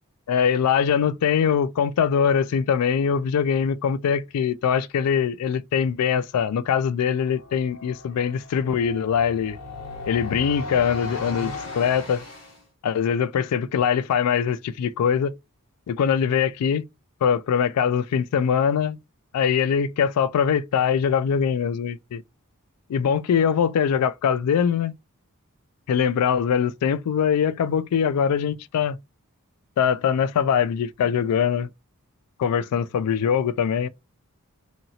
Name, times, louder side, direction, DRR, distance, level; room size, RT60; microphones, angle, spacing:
voice 1, 0.3-9.6 10.1-12.2 12.8-15.3 15.9-16.8 17.2-19.0 19.3-22.2 22.9-24.9 25.9-29.0 29.8-31.7 32.4-33.9, left 7 dB, 85° left, 0.3 m, -22 dB
sound 1, 7.2-12.6, left 3 dB, 60° left, 1.6 m, -36 dB
2.8 x 2.6 x 2.7 m
head